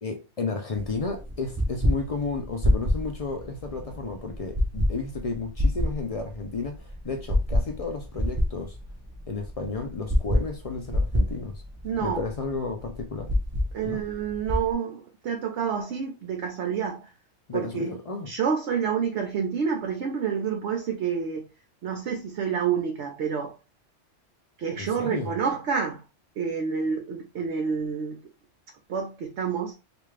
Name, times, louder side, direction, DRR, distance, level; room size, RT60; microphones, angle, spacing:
voice 1, 0.0-8.8 9.3-11.6 12.0-13.3 13.8-14.0 17.5-18.3 24.8-25.4, left 4 dB, 65° left, 0.3 m, -32 dB
sound 1, 0.7-14.7, left 1 dB, 15° right, 0.5 m, -28 dB
voice 2, 11.8-12.2 13.7-17.1 17.5-17.9 18.3-21.5 21.8-23.5 24.6-26.0 26.4-28.2 28.9-29.7, right 6 dB, 65° right, 0.9 m, -28 dB
3.5 x 2.4 x 3.2 m
omnidirectional pair, 1.3 m